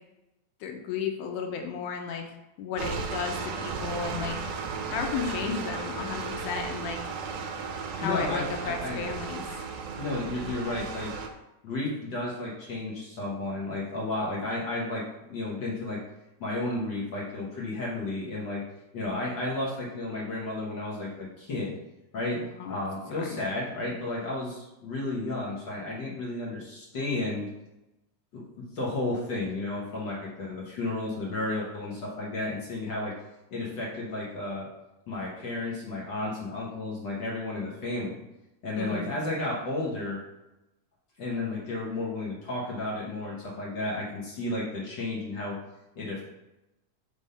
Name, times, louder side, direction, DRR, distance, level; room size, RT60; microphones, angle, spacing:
voice 1, 0.6-2.2 2.6-4.4 4.9-7.0 8.0-9.5 22.4-22.8 23.1-23.4 38.8-39.1, left 6 dB, 80° left, 3 dB, 2.2 m, -33 dB
sound 1, 2.8-11.3, right 5 dB, 80° right, 2.2 m, -35 dB
voice 2, 8.0-9.0 10.0-11.1 11.6-16.0 16.4-18.6 18.9-21.8 22.1-22.4 22.7-27.5 28.3-33.1 33.5-34.7 35.1-38.2 38.6-40.2 41.2-45.6 45.9-46.2, left 2 dB, 55° left, -5 dB, 1.3 m, -32 dB
5.3 x 3.5 x 5.4 m, 0.96 s
omnidirectional pair, 3.6 m